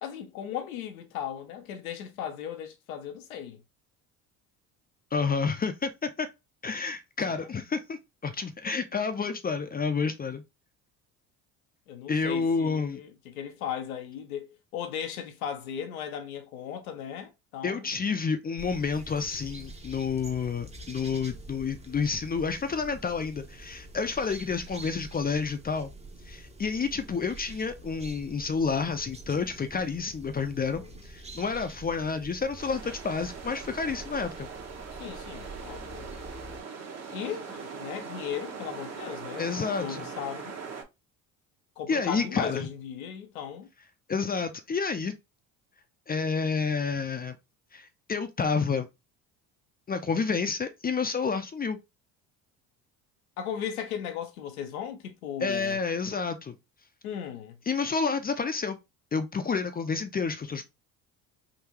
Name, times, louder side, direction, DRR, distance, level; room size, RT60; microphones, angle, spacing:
voice 1, 0.0-3.6 7.2-7.5 11.9-17.9 30.6-31.0 35.0-36.1 37.1-39.4 39.8-40.5 41.8-43.7 53.4-55.8 57.0-57.6, left 9 dB, 90° left, 0.8 m, -37 dB
voice 2, 5.1-6.3 6.6-10.4 12.1-13.0 17.6-25.9 26.3-30.8 31.1-34.5 39.4-40.1 41.9-42.7 44.1-45.1 46.1-47.4 47.7-48.9 49.9-51.8 55.4-56.5 57.7-58.8 59.1-60.6, left 5 dB, 20° left, 0.5 m, -29 dB
sound 1, 18.6-36.6, right 2 dB, 15° right, 0.8 m, -46 dB
sound 2, 32.6-40.8, right 5 dB, 40° right, 1.2 m, -41 dB
3.8 x 2.6 x 2.9 m
hypercardioid pair, 65°, 41 cm